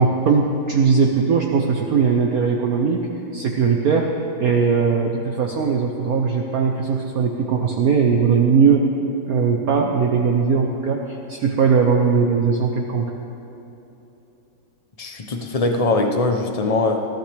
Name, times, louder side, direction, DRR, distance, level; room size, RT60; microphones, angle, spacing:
voice 1, 0.0-3.1 3.3-4.1 4.4-8.9 9.3-13.1, right 5 dB, 60° right, 2 dB, 1.1 m, -19 dB
voice 2, 15.0-17.1, left 2 dB, 60° left, 4 dB, 0.3 m, -21 dB
20.5 x 14.5 x 3.4 m, 3.0 s
omnidirectional pair, 2.1 m